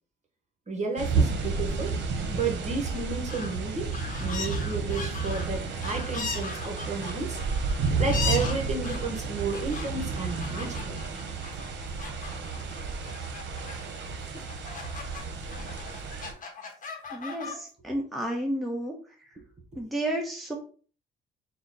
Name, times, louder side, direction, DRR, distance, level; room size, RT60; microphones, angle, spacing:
voice 1, 0.7-1.9 2.3-3.9 4.2-7.4 8.0-11.0 17.4-17.6, right 3 dB, 35° right, 2 dB, 1.2 m, -32 dB
sound 1, 1.0-16.3, right 4 dB, 65° right, 0.8 m, -31 dB
sound 2, 3.0-3.6 3.9-15.2 15.5-17.5, left 5 dB, 40° left, 1.0 m, -38 dB
voice 2, 17.1-18.9 19.8-20.5, right 1 dB, ahead, -1 dB, 0.9 m, -31 dB
4.0 x 2.2 x 3.9 m, 0.39 s
cardioid pair, 90°, 20 cm